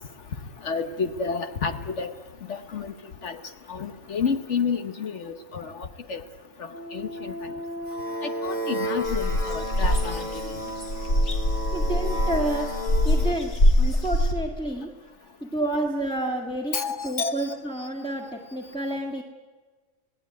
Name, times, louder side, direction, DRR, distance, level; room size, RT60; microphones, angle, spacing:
voice 1, 0.6-2.1 2.5-2.9 3.2-3.4 3.7-6.2 6.6-7.5 8.2-10.5 16.7-17.9, left 5 dB, 60° left, 8 dB, 1.4 m, -30 dB
sound 1, 6.7-13.3, equal, 40° left, 3.4 m, -33 dB
sound 2, 9.0-14.3, left 1 dB, 80° left, 2.7 m, -23 dB
voice 2, 11.7-12.7 13.0-13.5 13.8-14.9 15.4-19.2, right 2 dB, 5° left, -3 dB, 1.8 m, -29 dB
27.0 x 18.0 x 9.5 m, 1.4 s
omnidirectional pair, 1.4 m